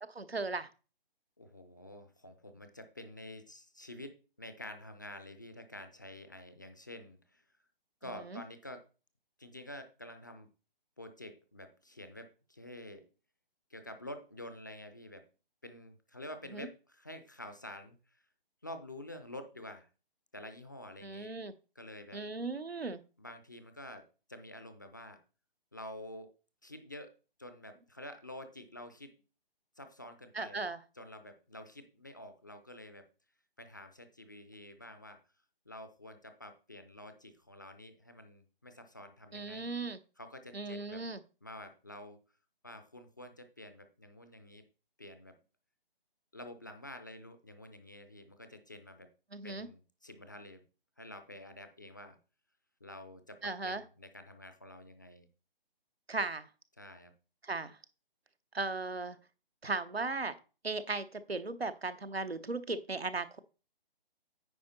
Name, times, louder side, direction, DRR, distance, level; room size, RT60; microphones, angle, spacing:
voice 1, 0.0-0.7 8.2-8.4 16.5-16.7 21.0-21.5 22.1-23.0 30.3-30.8 39.3-40.0 40.5-41.2 49.3-49.7 53.4-53.8 56.1-56.5 57.4-57.8 58.5-59.2 59.6-60.3 60.6-63.4, right 3 dB, 90° right, 11 dB, 1.0 m, -37 dB
voice 2, 1.4-4.1 4.4-7.4 8.0-8.8 9.4-10.5 11.0-13.1 13.7-15.3 15.6-18.0 18.6-19.9 20.3-21.3 21.8-22.2 23.2-25.2 25.7-26.3 26.6-27.1 27.4-29.2 29.8-30.7 31.0-33.0 33.6-35.2 35.7-39.7 40.2-41.0 41.4-42.2 42.6-44.6 45.0-45.4 46.3-49.1 49.4-50.6 51.0-52.2 52.8-55.3 56.8-57.1, left 1 dB, 20° left, 8 dB, 0.4 m, -48 dB
9.4 x 5.0 x 4.1 m, 0.34 s
figure-of-eight pair, 145°, 30 cm